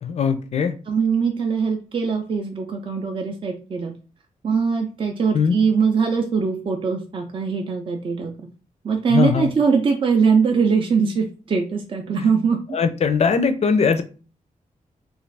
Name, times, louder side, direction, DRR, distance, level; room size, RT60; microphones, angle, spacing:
voice 1, 0.0-0.7 5.3-5.6 9.1-9.5 12.7-14.0, left 6 dB, 50° left, 10 dB, 0.4 m, -20 dB
voice 2, 0.9-3.9 4.4-8.3 8.8-12.6, right 5 dB, 40° right, 2 dB, 0.4 m, -21 dB
2.5 x 2.4 x 3.2 m, 0.36 s
wide cardioid pair, 105°, 14 cm